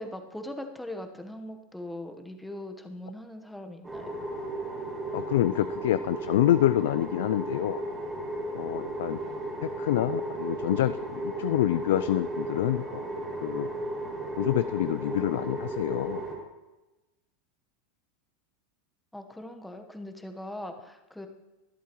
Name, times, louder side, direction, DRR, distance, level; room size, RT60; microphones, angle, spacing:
voice 1, 0.0-4.2 19.1-21.3, left 1 dB, 5° left, 5 dB, 1.1 m, -40 dB
sound 1, 3.8-16.4, right 1 dB, 15° right, 3.4 m, -34 dB
voice 2, 5.1-7.8 8.5-9.2 9.6-13.7 14.4-16.3, left 13 dB, 80° left, 14 dB, 0.3 m, -27 dB
23.0 x 8.2 x 3.1 m, 1.0 s
supercardioid pair, 140°, 0 cm